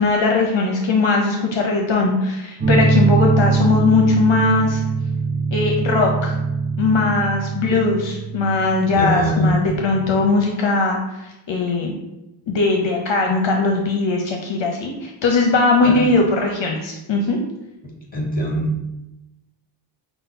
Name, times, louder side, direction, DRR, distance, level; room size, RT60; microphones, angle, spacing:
voice 1, 0.0-4.8 5.5-6.3 6.8-11.9 12.5-17.4, left 3 dB, 65° left, 1 dB, 0.7 m, -19 dB
sound 1, 2.6-10.3, right 4 dB, 20° right, 0.5 m, -22 dB
voice 2, 8.9-9.6 15.8-16.0 18.1-18.7, equal, 15° left, -2 dB, 1.3 m, -21 dB
5.5 x 2.0 x 4.1 m, 0.94 s
wide cardioid pair, 110°, 50 cm